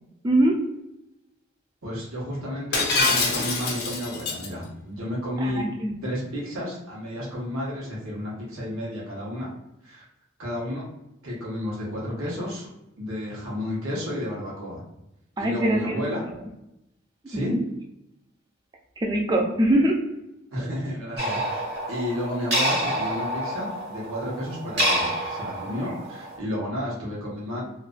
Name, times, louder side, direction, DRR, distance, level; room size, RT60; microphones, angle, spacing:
voice 1, 0.2-0.6 5.4-6.0 15.4-15.8 17.3-17.6 19.0-20.0, right 1 dB, 20° right, 1 dB, 0.3 m, -22 dB
voice 2, 1.8-5.6 6.0-9.5 9.8-10.0 10.4-10.8 11.2-12.7 13.0-14.8 15.4-16.2 17.3-17.5 20.5-27.6, left 1 dB, 85° right, -5 dB, 0.9 m, -32 dB
Shatter, 2.7-4.5, left 3 dB, 50° left, 0.5 m, -24 dB
sound 1, 21.2-26.4, equal, 55° right, 0.9 m, -28 dB
2.4 x 2.2 x 2.4 m, 0.88 s
head